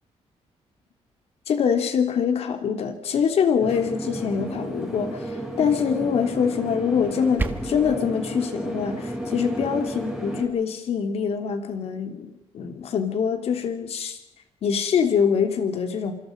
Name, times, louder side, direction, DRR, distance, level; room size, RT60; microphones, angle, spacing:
voice 1, 1.5-14.2 14.6-16.1, left 7 dB, 60° left, 6 dB, 3.4 m, -24 dB
sound 1, 3.6-10.5, equal, ahead, 7.4 m, -32 dB
sound 2, 7.0-8.0, right 3 dB, 15° right, 1.5 m, -31 dB
27.0 x 26.5 x 5.5 m, 0.89 s
cardioid pair, 155°, 12 cm